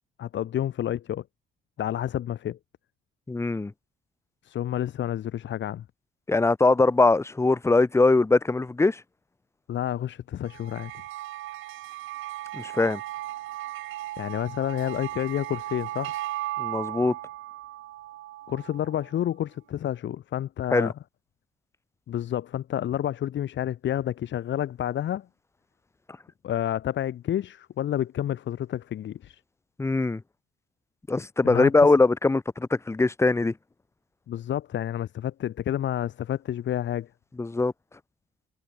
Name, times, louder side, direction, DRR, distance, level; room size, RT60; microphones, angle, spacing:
voice 1, 0.2-1.2 1.8-2.6 4.4-5.8 9.7-10.9 14.2-16.1 18.5-20.9 22.1-25.3 26.4-29.4 31.4-31.9 34.3-37.1, left 11 dB, 70° left, 2.3 m, -29 dB
voice 2, 3.3-3.7 6.3-9.0 12.5-13.0 16.6-17.1 20.7-20.9 29.8-30.2 31.1-33.5 37.4-37.7, left 3 dB, 15° left, 0.7 m, -22 dB
sound 1, 10.5-19.1, right 15 dB, 85° right, 2.1 m, -36 dB
cardioid pair, 90°, 20 cm